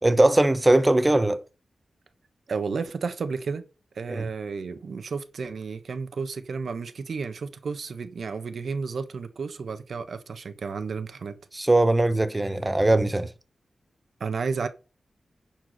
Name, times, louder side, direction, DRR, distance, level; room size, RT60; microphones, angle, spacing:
voice 1, 0.0-1.4 4.1-4.2 11.5-13.3, right 1 dB, 15° right, 1.0 m, -20 dB
voice 2, 2.5-3.6 3.9-11.4 14.2-14.7, right 5 dB, 70° right, 1.2 m, -32 dB
10.5 x 4.7 x 6.5 m
wide cardioid pair, 100°, 0 cm